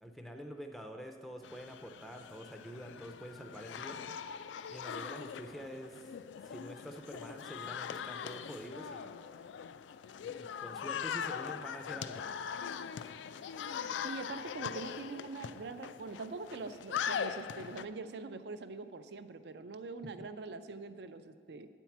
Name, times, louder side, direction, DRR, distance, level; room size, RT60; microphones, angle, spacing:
voice 1, 0.0-4.0 4.7-6.1 6.4-9.1 10.2-12.2, equal, ahead, 4 dB, 0.4 m, -47 dB
sound 1, 1.4-17.9, left 7 dB, 85° left, 0.3 m, -41 dB
voice 2, 14.0-21.7, right 3 dB, 70° right, 10 dB, 0.4 m, -43 dB
9.1 x 4.5 x 7.1 m, 2.1 s
head